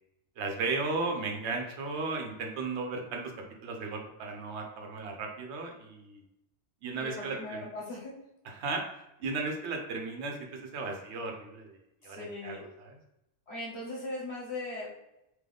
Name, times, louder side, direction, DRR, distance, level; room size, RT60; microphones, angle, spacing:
voice 1, 0.4-3.2 3.6-6.2 6.8-7.7 8.5-8.8 9.2-11.8 12.0-12.9, right 3 dB, 85° right, 2 dB, 1.0 m, -35 dB
voice 2, 6.9-8.1 12.0-12.6 13.5-14.9, left 2 dB, 70° left, -4 dB, 1.4 m, -39 dB
3.7 x 3.0 x 3.4 m, 0.87 s
omnidirectional pair, 1.1 m